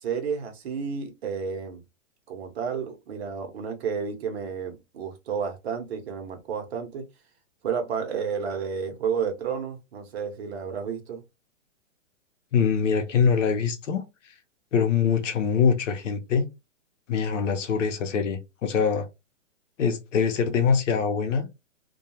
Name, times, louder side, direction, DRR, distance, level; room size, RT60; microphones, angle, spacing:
voice 1, 0.0-1.8 2.3-7.0 7.6-11.2, right 6 dB, 55° right, 0.8 m, -31 dB
voice 2, 12.5-14.0 14.7-16.5 17.1-19.1 19.8-21.5, left 6 dB, 70° left, 0.8 m, -23 dB
2.3 x 2.3 x 2.9 m
hypercardioid pair, 160°, 38 cm